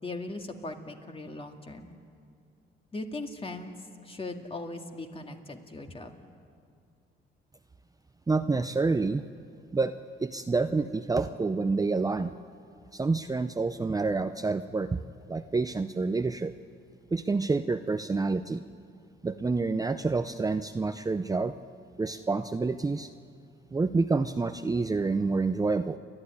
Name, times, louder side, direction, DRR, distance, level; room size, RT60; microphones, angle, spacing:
voice 1, 0.0-1.9 2.9-3.7 4.0-6.3, left 2 dB, 30° left, 4 dB, 2.2 m, -39 dB
voice 2, 8.3-9.2 9.7-9.9 10.2-12.3 12.9-15.0 15.3-16.5 17.1-18.6 19.2-21.5 22.0-23.1 23.7-26.0, right 3 dB, 20° right, 9 dB, 0.6 m, -28 dB
29.5 x 11.5 x 9.9 m, 2.3 s
cardioid pair, 90°, 20 cm